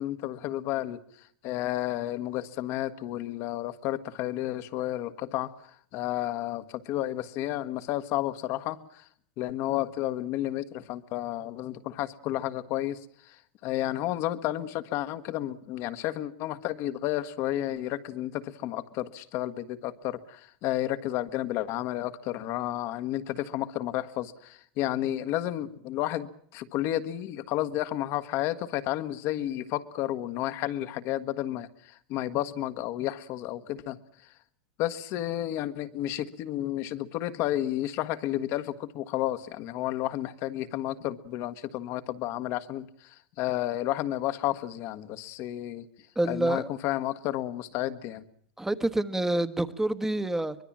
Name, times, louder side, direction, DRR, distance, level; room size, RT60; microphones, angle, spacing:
voice 1, 0.0-9.1 9.4-26.3 26.5-34.0 34.8-45.9 46.2-48.2, left 14 dB, 50° left, 11 dB, 1.5 m, -32 dB
voice 2, 46.1-46.7 48.6-50.6, right 1 dB, 5° right, 11 dB, 1.3 m, -27 dB
24.5 x 21.5 x 7.5 m, 0.63 s
hypercardioid pair, 115°, 6 cm